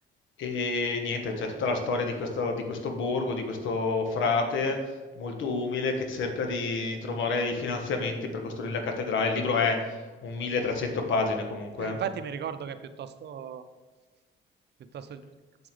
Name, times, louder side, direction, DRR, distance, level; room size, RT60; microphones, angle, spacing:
voice 1, 0.4-4.8 5.2-9.8 10.2-12.0, left 4 dB, 75° left, 4 dB, 1.4 m, -29 dB
voice 2, 11.8-13.6 14.9-15.3, right 8 dB, 60° right, 11 dB, 0.6 m, -36 dB
7.8 x 7.5 x 3.3 m, 1.3 s
cardioid pair, 90°, 20 cm